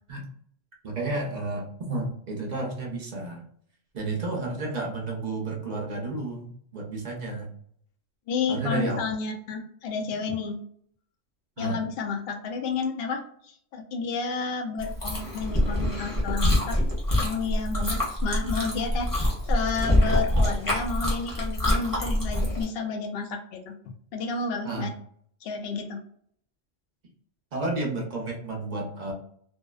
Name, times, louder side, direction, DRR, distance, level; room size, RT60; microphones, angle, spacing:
voice 1, 0.8-3.4 3.9-7.5 8.5-9.0 11.6-11.8 24.6-24.9 27.5-29.1, right 2 dB, 45° right, -1 dB, 0.7 m, -31 dB
voice 2, 8.3-10.6 11.6-16.8 17.2-24.9 25.4-26.0, left 5 dB, 65° left, 4 dB, 0.7 m, -31 dB
Chewing mastication, 14.8-22.6, left 1 dB, 20° left, 0.8 m, -25 dB
2.6 x 2.0 x 2.3 m, 0.63 s
omnidirectional pair, 1.2 m